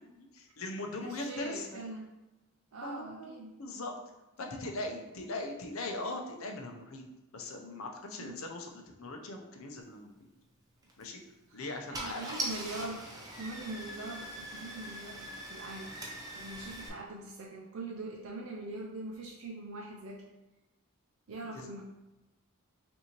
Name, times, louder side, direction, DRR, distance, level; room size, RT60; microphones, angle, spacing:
voice 1, 0.0-1.9 2.8-3.9 4.4-7.0 7.3-10.1 11.0-11.2 11.5-12.3 21.5-21.7, left 2 dB, 75° left, 2 dB, 0.7 m, -40 dB
voice 2, 1.0-2.1 2.7-3.5 8.3-8.4 11.5-11.6 11.9-16.0 16.3-20.2 21.3-21.8, right 2 dB, 75° right, -1 dB, 0.5 m, -42 dB
Car / Engine starting, 10.8-11.0 11.6-11.7 11.9-16.9, right 1 dB, 15° right, 0.6 m, -41 dB
5.5 x 2.7 x 2.9 m, 1.0 s
head